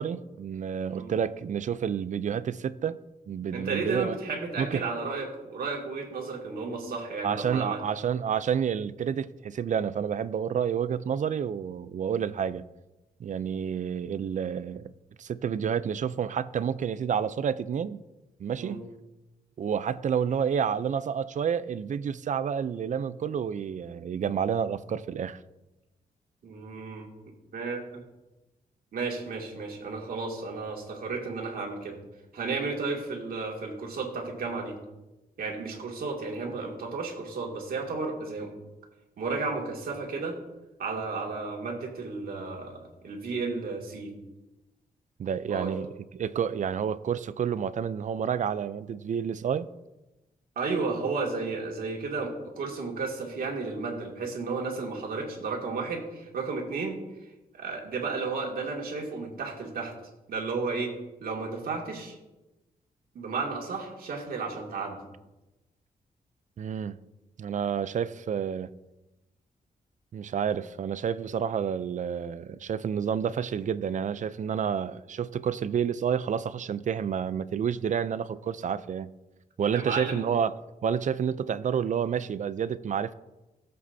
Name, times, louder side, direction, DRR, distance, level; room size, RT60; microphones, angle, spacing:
voice 1, 0.0-3.0 3.3-4.2 4.6-4.8 7.2-12.6 13.2-14.9 15.2-18.0 18.4-18.8 19.6-25.4 45.2-49.7 66.6-67.0 67.4-68.7 70.1-79.1 79.6-80.5 80.8-83.1, right 7 dB, 55° right, 0.5 m, -29 dB
voice 2, 3.5-7.8 18.6-18.8 26.4-27.1 27.5-28.0 28.9-32.0 32.3-34.8 35.4-38.5 39.2-40.4 40.8-44.1 45.5-45.7 50.6-57.0 57.5-59.9 60.3-60.9 61.2-62.2 63.1-65.0 79.7-80.3, right 4 dB, 70° right, 2.4 m, -33 dB
17.5 x 7.8 x 2.8 m
cardioid pair, 90°, 16 cm